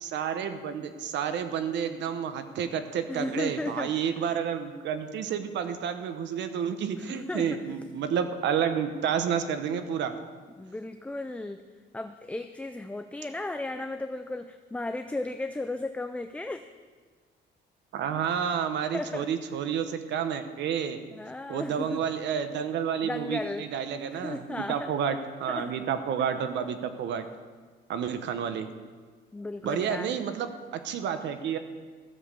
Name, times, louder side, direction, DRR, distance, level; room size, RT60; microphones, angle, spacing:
voice 1, 0.0-10.1 17.9-21.0 21.5-27.3 27.9-28.7 29.6-31.6, right 8 dB, 70° right, 9 dB, 1.0 m, -30 dB
voice 2, 3.1-3.9 7.0-7.5 10.6-11.6 11.9-16.7 18.9-19.3 21.1-22.0 23.0-23.7 24.1-24.9 25.5-25.8 29.3-30.3, left 2 dB, 5° left, 8 dB, 0.4 m, -35 dB
13.5 x 7.3 x 6.6 m, 1.5 s
cardioid pair, 140°, 19 cm